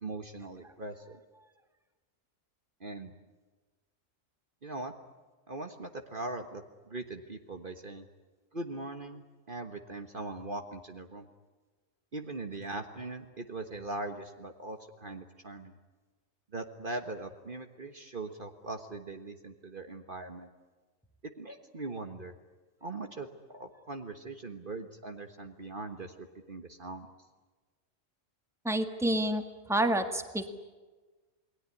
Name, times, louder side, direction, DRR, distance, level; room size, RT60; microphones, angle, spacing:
voice 1, 0.0-1.2 2.8-3.1 4.6-4.9 5.5-8.1 8.5-11.3 12.1-15.7 16.5-20.5 21.4-22.3 22.8-23.3 23.5-27.1, right 2 dB, 40° right, 6 dB, 1.6 m, -40 dB
voice 2, 28.7-29.4 29.7-30.5, right 1 dB, ahead, 7 dB, 1.7 m, -28 dB
28.5 x 20.5 x 9.8 m, 1.3 s
omnidirectional pair, 1.4 m